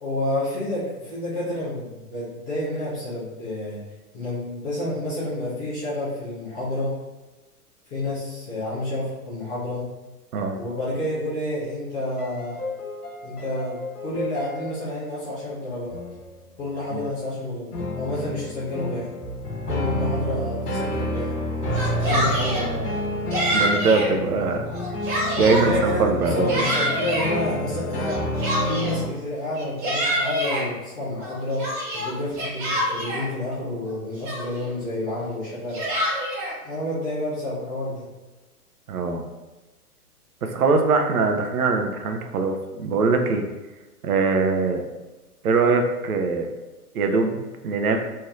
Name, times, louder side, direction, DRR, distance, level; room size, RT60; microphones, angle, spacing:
voice 1, 0.0-3.8 4.1-6.9 7.9-9.8 10.5-12.6 13.2-15.9 16.6-17.7 18.0-19.1 19.6-22.9 24.2-24.4 25.4-28.2 28.6-31.6 31.9-35.8 36.6-38.1, left 1 dB, 15° left, -10 dB, 0.4 m, -29 dB
sound 1, 12.1-15.0 15.9-16.5 17.7-29.1, left 1 dB, 75° left, 0.9 m, -29 dB
Yell, 21.6-22.7 23.3-24.1 24.6-25.7 26.2-27.3 28.1-29.0 29.5-30.6 31.2-33.3 33.9-34.0 34.2-34.7 35.5-36.5, equal, 35° right, 0.9 m, -26 dB
voice 2, 23.5-24.7 25.4-26.7 38.9-39.2 40.4-43.4 44.0-44.8 45.4-46.5 46.9-48.0, right 4 dB, 70° right, 4 dB, 0.5 m, -22 dB
3.1 x 2.6 x 2.4 m, 1.2 s
figure-of-eight pair, 110°, 46 cm